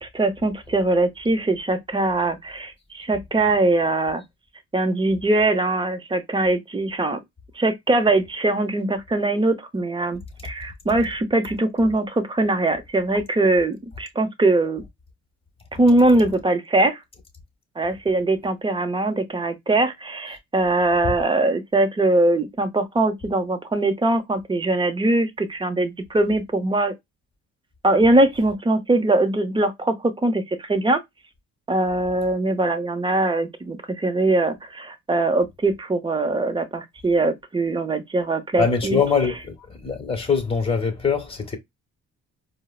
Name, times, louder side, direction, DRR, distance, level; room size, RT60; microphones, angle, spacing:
voice 1, 0.0-4.2 4.7-7.2 7.6-14.8 15.8-17.0 17.8-26.9 27.8-31.0 31.7-39.0, right 2 dB, 15° right, 0.8 m, -21 dB
voice 2, 38.6-39.5 39.8-41.6, left 5 dB, 20° left, 1.2 m, -22 dB
4.5 x 2.1 x 2.3 m
cardioid pair, 90°, 30 cm